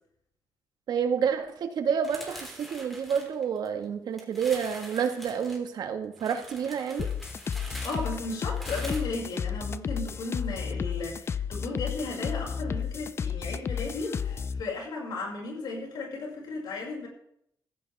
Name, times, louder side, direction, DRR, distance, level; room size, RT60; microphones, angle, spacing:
voice 1, 0.9-7.1, right 7 dB, 65° right, 6 dB, 1.8 m, -29 dB
sound 1, 2.0-3.8 4.2-5.6 6.2-9.0, right 1 dB, ahead, 3.3 m, -44 dB
sound 2, 7.0-14.6, left 7 dB, 35° left, 0.5 m, -32 dB
voice 2, 7.8-17.1, left 3 dB, 70° left, -1 dB, 6.0 m, -35 dB
15.5 x 15.0 x 3.6 m, 0.71 s
cardioid pair, 140°, 7 cm